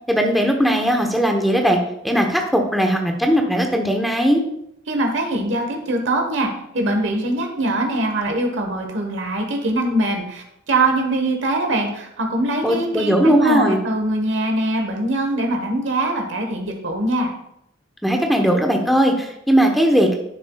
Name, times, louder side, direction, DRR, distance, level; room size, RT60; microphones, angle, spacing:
voice 1, 0.1-1.8 2.0-4.4 12.6-13.8 18.0-20.2, equal, ahead, 2 dB, 0.9 m, -18 dB
voice 2, 4.9-17.3, right 1 dB, 75° right, 3 dB, 1.2 m, -22 dB
10.5 x 6.9 x 2.3 m, 0.76 s
head